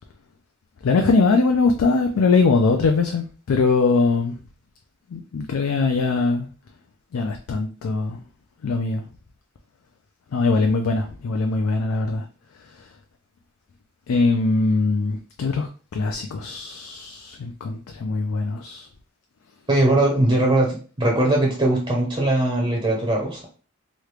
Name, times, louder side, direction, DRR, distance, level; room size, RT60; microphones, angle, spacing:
voice 1, 0.8-4.3 5.1-6.4 7.1-8.2 8.6-9.0 10.3-12.2 14.1-15.7 15.9-18.9, left 3 dB, 85° left, 0.4 m, -21 dB
voice 2, 19.7-23.5, right 1 dB, 25° right, 0.6 m, -20 dB
3.1 x 2.4 x 3.2 m
head